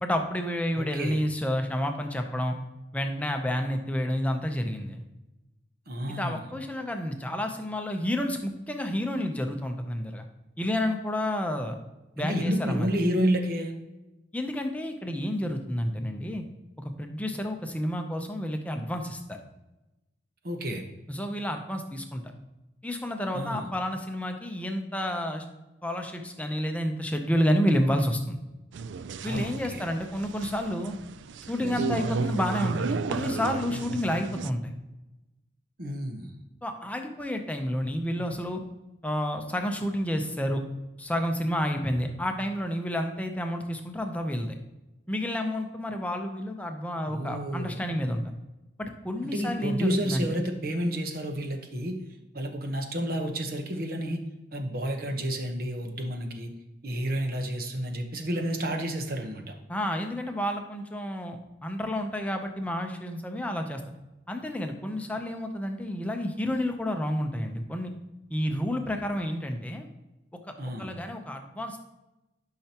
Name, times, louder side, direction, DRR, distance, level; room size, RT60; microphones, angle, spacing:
voice 1, 0.0-2.6 2.9-5.0 6.1-10.3 10.6-11.8 12.2-12.9 14.3-16.4 16.8-19.4 21.1-22.3 22.8-25.5 25.8-28.4 29.2-30.9 31.5-34.6 36.6-38.6 39.0-40.6 41.0-44.5 45.1-48.2 48.8-50.4 59.7-63.8 64.3-67.9 68.3-69.9 70.8-71.9, equal, 5° left, 4 dB, 0.7 m, -30 dB
voice 2, 0.7-1.2 5.9-6.5 12.2-13.7 20.4-20.8 23.3-23.7 29.2-29.8 35.8-36.3 47.0-47.9 49.2-52.0 52.3-54.2 54.5-56.5 56.8-59.5 70.6-71.0, equal, 50° right, 4 dB, 1.1 m, -30 dB
sound 1, 28.7-34.5, right 4 dB, 75° right, 0.4 m, -33 dB
12.0 x 5.8 x 2.9 m, 1.0 s
head